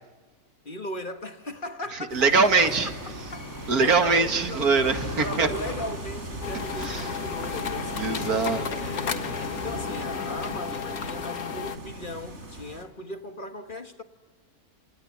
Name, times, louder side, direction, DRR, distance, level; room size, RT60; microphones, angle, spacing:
voice 1, 0.6-4.7 5.2-8.1 8.7-14.0, left 1 dB, 35° left, 1.5 m, -38 dB
sound 1, 2.1-12.8, right 1 dB, 50° right, 4.2 m, -39 dB
voice 2, 2.1-2.9 3.7-5.5 6.8-7.1 8.0-8.8, right 4 dB, 80° right, 2.4 m, -22 dB
sound 2, 2.6-10.2, equal, 10° left, 3.4 m, -40 dB
sound 3, 6.4-11.8, left 7 dB, 75° left, 1.9 m, -33 dB
29.5 x 28.0 x 7.2 m
omnidirectional pair, 1.6 m